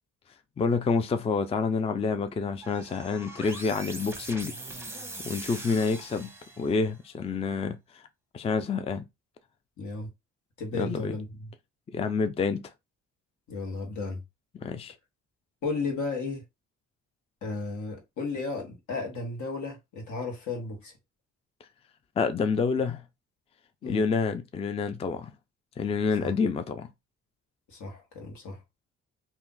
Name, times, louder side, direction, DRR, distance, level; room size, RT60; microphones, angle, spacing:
voice 1, 0.6-6.3 6.6-8.0 8.3-9.0 10.7-11.1 11.9-12.6 14.6-14.9 22.2-23.0 23.9-25.3 25.8-26.9, left 5 dB, 20° left, 0.4 m, -28 dB
sound 1, 2.6-6.9, right 2 dB, 10° right, 0.8 m, -41 dB
voice 2, 9.8-10.1 10.6-11.5 13.5-14.2 15.6-16.4 17.4-20.9 23.8-24.1 26.2-26.3 27.7-28.6, left 3 dB, 75° left, 1.4 m, -34 dB
2.6 x 2.4 x 3.7 m
cardioid pair, 90°, 30 cm